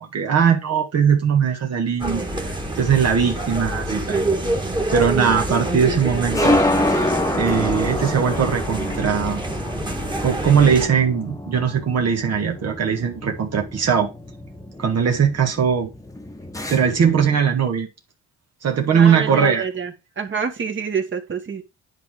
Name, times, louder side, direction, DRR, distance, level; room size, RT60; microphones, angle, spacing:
voice 1, 0.0-4.2 4.9-6.6 6.9-7.1 7.3-9.4 10.2-14.1 14.8-15.9 16.7-17.9 18.6-19.7, right 7 dB, 55° right, 1.6 m, -20 dB
sound 1, 2.0-10.9, right 2 dB, 15° right, 1.7 m, -26 dB
sound 2, 4.1-17.4, left 1 dB, 10° left, 1.1 m, -28 dB
voice 2, 18.9-21.6, right 6 dB, 40° right, 1.8 m, -27 dB
10.0 x 3.6 x 4.8 m
cardioid pair, 90°, 30 cm